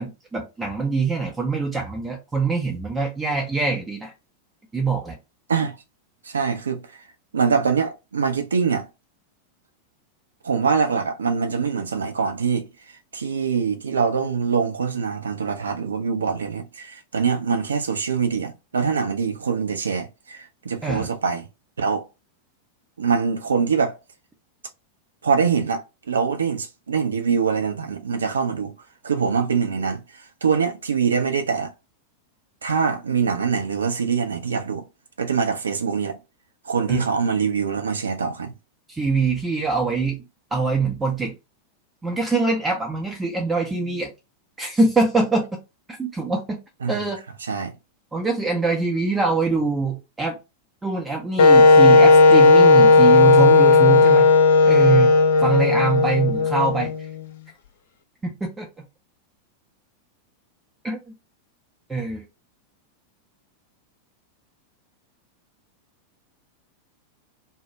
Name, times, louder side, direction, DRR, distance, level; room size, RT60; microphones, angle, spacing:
voice 1, 0.0-4.1 4.7-5.2 20.8-21.1 36.9-37.0 38.9-40.2 40.5-41.3 42.0-44.1 44.6-45.5 46.0-46.6 46.9-47.2 48.1-50.4 50.8-54.3 54.6-55.1 55.4-56.9 58.2-58.7 60.8-61.0 61.9-62.2, right 4 dB, 15° right, 0.5 m, -23 dB
voice 2, 6.3-6.8 7.3-8.9 10.4-12.7 13.1-21.5 21.8-22.0 23.0-23.9 25.2-25.8 26.1-28.7 29.0-30.0 30.4-31.7 32.6-34.8 35.2-36.2 36.7-38.5 46.8-47.0 47.5-47.7, right 6 dB, 70° right, 0.4 m, -23 dB
Wind instrument woodwind instrument, 51.4-57.2, left 3 dB, 60° left, 0.4 m, -14 dB
2.2 x 2.0 x 2.7 m
figure-of-eight pair, 90°, 0 cm